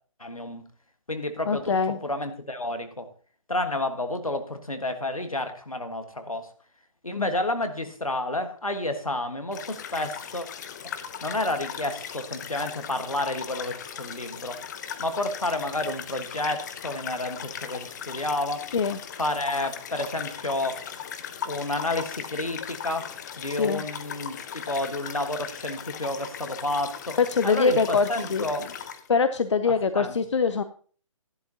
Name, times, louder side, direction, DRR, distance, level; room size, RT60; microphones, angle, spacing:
voice 1, 0.2-0.6 1.1-3.1 3.5-6.5 7.0-10.5 10.8-14.6 15.0-18.7 19.2-20.9 21.4-23.1 23.4-27.2 27.4-28.7 29.7-30.2, left 2 dB, 85° left, 8 dB, 1.5 m, -30 dB
voice 2, 1.5-2.0 7.2-7.3 18.7-19.0 23.6-23.8 27.2-28.5 29.1-30.6, left 5 dB, 60° left, 11 dB, 0.6 m, -23 dB
sound 1, 9.5-29.1, left 8 dB, 30° left, 0.8 m, -38 dB
13.0 x 11.5 x 2.8 m, 0.43 s
figure-of-eight pair, 135°, 17 cm